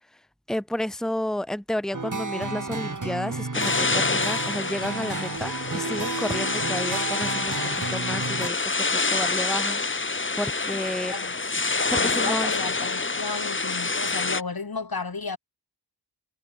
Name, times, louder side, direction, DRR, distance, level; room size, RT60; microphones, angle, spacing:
voice 1, 0.5-11.1 11.9-12.5, left 1 dB, ahead, 1.6 m, -31 dB
sound 1, 1.9-8.5, right 3 dB, 50° right, 4.3 m, -32 dB
sound 2, 3.5-14.4, left 3 dB, 30° left, 1.1 m, -27 dB
voice 2, 11.0-11.4 11.9-15.4, left 4 dB, 65° left, 3.6 m, -33 dB
wide cardioid pair, 50°, 39 cm